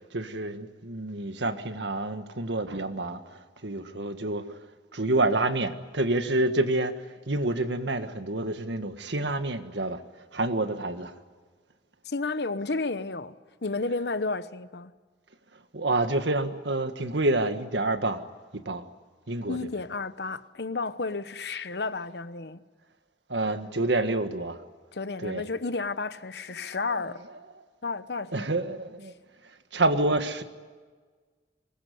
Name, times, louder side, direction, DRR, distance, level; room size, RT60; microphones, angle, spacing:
voice 1, 0.1-4.4 4.9-6.9 7.3-10.0 10.3-11.1 15.7-18.2 18.5-18.8 19.3-19.6 23.3-24.6 25.2-25.4 28.3-29.1 29.7-30.4, right 2 dB, 85° right, 1.7 m, -28 dB
voice 2, 12.0-13.3 13.6-14.9 19.5-22.6 24.9-27.2 27.8-28.5, left 3 dB, 70° left, 1.0 m, -32 dB
24.0 x 20.5 x 9.5 m
head